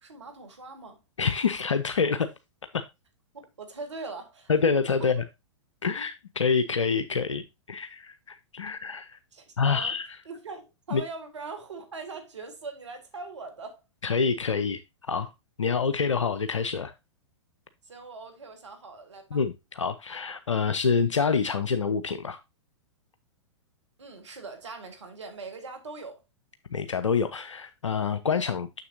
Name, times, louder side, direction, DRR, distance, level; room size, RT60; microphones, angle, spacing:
voice 1, 0.0-1.0 3.3-4.5 5.0-5.1 9.3-9.9 10.2-13.8 17.8-19.4 24.0-26.2, right 3 dB, 70° right, 1.5 m, -41 dB
voice 2, 1.2-2.3 2.7-2.8 4.5-5.2 5.8-9.2 9.6-10.1 10.9-11.0 14.0-14.8 15.1-15.3 15.6-16.9 19.3-22.4 26.7-28.8, left 5 dB, 75° left, 0.5 m, -27 dB
6.7 x 6.5 x 2.6 m
figure-of-eight pair, 105°, 16 cm